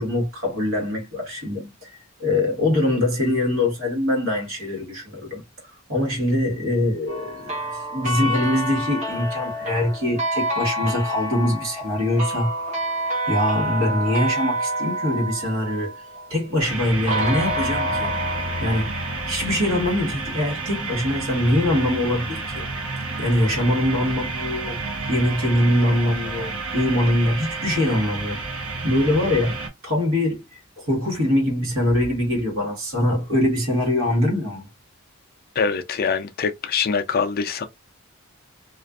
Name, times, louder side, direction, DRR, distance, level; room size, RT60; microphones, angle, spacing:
voice 1, 0.0-1.9 2.2-5.4 5.9-12.5 13.3-15.9 16.3-18.1 18.6-18.9 19.3-22.7 23.2-24.8 25.1-28.4 28.8-29.6 29.8-30.4 30.8-34.7, left 1 dB, 65° right, 1.3 m, -23 dB
sound 1, 7.1-16.3 17.1-20.0, right 1 dB, 35° right, 1.0 m, -28 dB
sound 2, 16.6-29.7, right 3 dB, 85° right, 1.0 m, -30 dB
voice 2, 35.6-37.7, left 5 dB, 45° left, 0.4 m, -24 dB
2.4 x 2.4 x 2.2 m
head